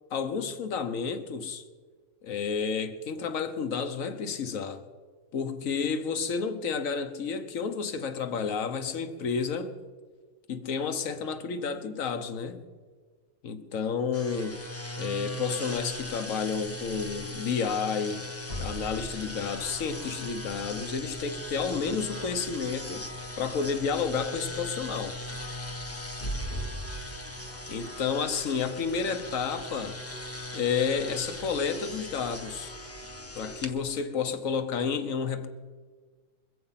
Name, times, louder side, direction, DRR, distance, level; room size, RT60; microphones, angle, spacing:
voice 1, 0.1-1.6 2.2-4.8 5.3-9.7 10.5-12.6 13.4-14.6 15.0-18.3 18.6-23.1 23.4-25.2 27.7-30.0 30.5-32.7 33.3-35.5, left 6 dB, 65° left, 1.3 m, -31 dB
sound 1, 14.1-33.7, left 1 dB, 15° left, 0.5 m, -40 dB
sound 2, 18.5-33.9, equal, 45° left, 1.1 m, -43 dB
22.5 x 7.9 x 5.7 m
omnidirectional pair, 1.6 m